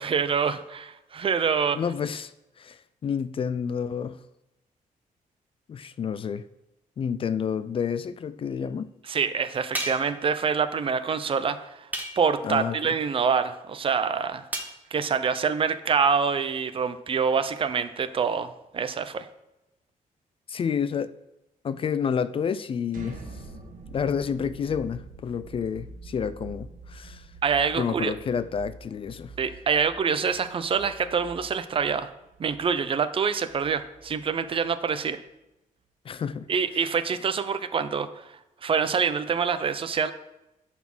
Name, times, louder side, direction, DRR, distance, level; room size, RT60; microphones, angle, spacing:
voice 1, 0.0-1.8 9.1-11.9 12.2-14.4 14.9-19.3 27.4-28.1 29.4-32.1 32.4-35.2 36.5-38.2 38.6-40.1, right 6 dB, 40° right, 0.5 m, -26 dB
voice 2, 1.8-2.3 2.6-4.2 5.7-6.4 7.0-8.9 12.4-12.9 20.5-21.1 21.6-23.2 23.9-27.2 27.7-29.3 36.1-36.5, left 7 dB, 40° left, 0.4 m, -29 dB
sound 1, 9.7-10.2 11.9-12.4 14.5-14.8, right 1 dB, 10° right, 1.0 m, -33 dB
sound 2, 22.9-34.7, right 3 dB, 70° right, 1.5 m, -45 dB
10.5 x 4.2 x 6.0 m
wide cardioid pair, 145°, 14 cm